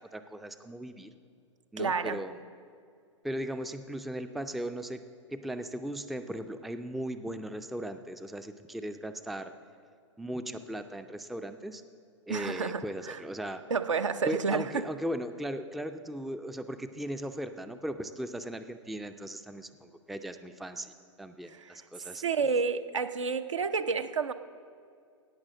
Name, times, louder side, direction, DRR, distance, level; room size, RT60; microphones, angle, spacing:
voice 1, 0.1-1.1 1.7-2.3 3.2-5.0 5.3-9.5 10.2-11.8 12.3-13.6 14.3-20.9 21.2-22.2, right 1 dB, ahead, 9 dB, 0.4 m, -37 dB
voice 2, 1.8-2.2 12.3-13.2 13.7-14.8 21.5-24.3, right 5 dB, 75° right, 10 dB, 0.7 m, -30 dB
17.5 x 6.1 x 7.3 m, 2.2 s
figure-of-eight pair, 105°, 16 cm